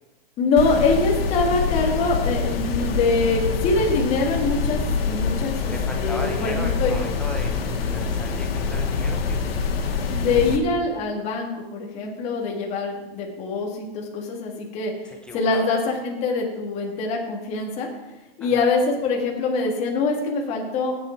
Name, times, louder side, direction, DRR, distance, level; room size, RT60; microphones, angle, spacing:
voice 1, 0.4-7.0 10.1-14.9 15.3-17.9 18.4-20.9, left 3 dB, 20° left, 0 dB, 1.9 m, -24 dB
sound 1, 0.6-10.6, left 5 dB, 75° left, 2.0 m, -25 dB
voice 2, 5.4-9.4 15.0-15.7 18.4-18.6, left 1 dB, 5° left, 1 dB, 0.5 m, -36 dB
16.5 x 8.3 x 4.5 m, 1.1 s
supercardioid pair, 170°, 30 cm